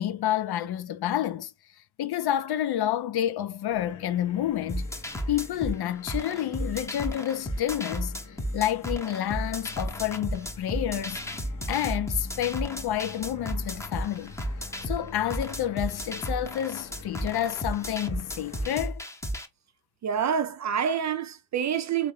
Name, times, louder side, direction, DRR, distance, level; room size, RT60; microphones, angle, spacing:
voice 1, 0.0-1.5 2.0-4.9 5.3-11.4 11.7-14.3 14.8-19.0, left 11 dB, 55° left, 0.5 m, -29 dB
sound 1, 3.7-18.9, left 4 dB, 40° left, 0.9 m, -47 dB
sound 2, 4.7-19.5, equal, 5° left, 0.8 m, -33 dB
voice 2, 20.0-22.1, right 8 dB, 40° right, 0.4 m, -27 dB
3.5 x 2.5 x 3.1 m
supercardioid pair, 45°, 46 cm